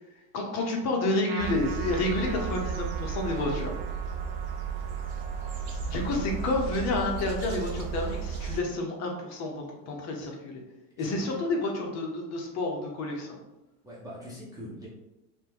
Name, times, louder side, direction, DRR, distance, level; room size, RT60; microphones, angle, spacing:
voice 1, 0.3-3.7 5.8-10.6 11.0-13.4, left 2 dB, 35° left, 1 dB, 0.6 m, -30 dB
Trumpet, 1.3-8.0, right 5 dB, 90° right, 0.7 m, -44 dB
sound 1, 1.4-8.6, right 6 dB, 55° right, 0.9 m, -34 dB
voice 2, 11.0-11.3 13.8-14.9, equal, 10° right, -8 dB, 0.5 m, -43 dB
2.8 x 2.2 x 3.6 m, 0.95 s
hypercardioid pair, 110°, 48 cm